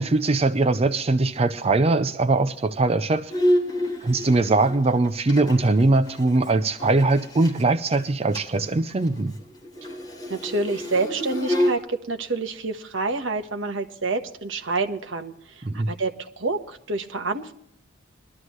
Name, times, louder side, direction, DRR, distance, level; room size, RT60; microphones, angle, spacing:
voice 1, 0.0-3.3 4.0-9.4 15.6-15.9, right 2 dB, 30° right, 11 dB, 0.5 m, -21 dB
Bowed string instrument, 3.3-7.6 7.9-8.0 8.3-8.6 8.9-11.8, equal, 20° left, 3.1 m, -28 dB
voice 2, 10.3-17.5, right 3 dB, 70° right, 5 dB, 1.3 m, -28 dB
21.0 x 13.0 x 3.2 m, 0.68 s
head